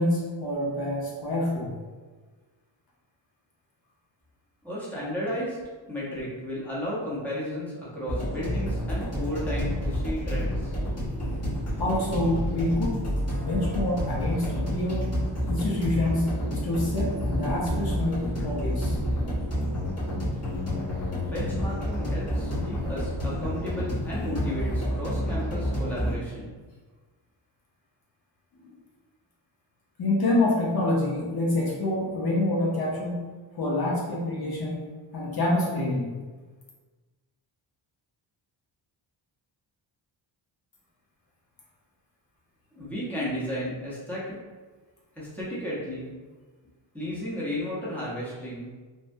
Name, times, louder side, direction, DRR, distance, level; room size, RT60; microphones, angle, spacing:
voice 1, 0.0-1.7 11.8-13.1 13.4-15.1 15.5-16.3 16.6-19.0 28.6-28.7 30.0-33.2 33.6-34.8 35.1-36.2, left 1 dB, 50° left, -4 dB, 0.7 m, -27 dB
voice 2, 4.6-5.6 5.9-10.8 21.1-26.5 42.7-44.4 45.2-46.1 46.9-48.7, equal, 5° left, -8 dB, 0.8 m, -33 dB
sound 1, 8.1-26.2, equal, 30° left, 1.1 m, -29 dB
3.3 x 2.1 x 2.6 m, 1.4 s
wide cardioid pair, 125°, 46 cm